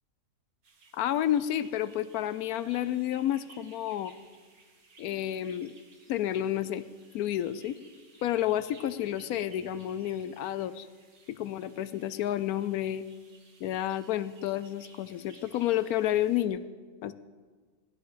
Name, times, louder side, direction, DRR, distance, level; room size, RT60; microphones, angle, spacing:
sound 1, 0.6-16.4, right 3 dB, 65° right, 2.1 m, -58 dB
voice 1, 0.9-4.1 5.0-5.7 6.1-6.8 7.1-7.8 8.2-10.9 11.3-13.0 13.6-16.6 17.0-17.1, left 12 dB, 70° left, 14 dB, 1.0 m, -30 dB
16.5 x 11.5 x 5.0 m, 1.5 s
omnidirectional pair, 1.7 m